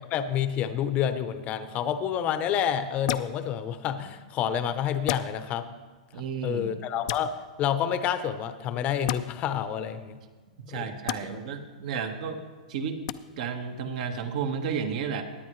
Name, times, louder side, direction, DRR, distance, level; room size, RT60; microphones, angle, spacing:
voice 1, 0.1-5.7 6.4-7.3 7.6-10.2 10.7-10.8 11.2-11.4, left 9 dB, 35° left, 10 dB, 0.8 m, -28 dB
sound 1, 3.1-3.3 5.1-5.3 7.1-7.2 9.1-9.2 11.1-11.2 13.1-13.2, left 16 dB, 55° left, 0.5 m, -30 dB
voice 2, 6.1-6.8 10.7-12.4 12.7-13.0 13.4-15.2, right 6 dB, 60° right, 6 dB, 1.5 m, -32 dB
17.5 x 10.0 x 3.2 m, 1.4 s
hypercardioid pair, 125°, 4 cm